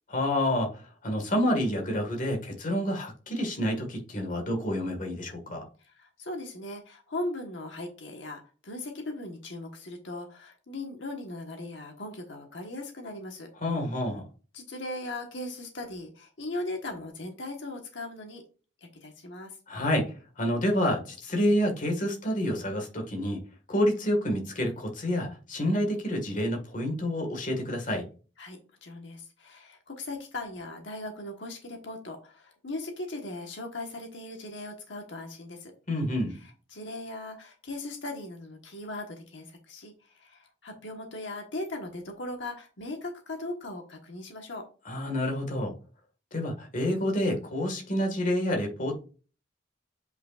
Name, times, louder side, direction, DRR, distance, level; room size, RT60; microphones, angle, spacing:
voice 1, 0.1-5.6 13.6-14.2 19.7-23.4 23.7-28.1 35.9-36.4 44.9-45.7 46.3-49.0, left 1 dB, 45° left, 1.7 m, -28 dB
voice 2, 5.8-13.5 14.5-18.4 18.8-19.6 28.4-35.7 36.7-44.6, left 2 dB, 75° left, 1.3 m, -38 dB
7.7 x 5.6 x 2.5 m
head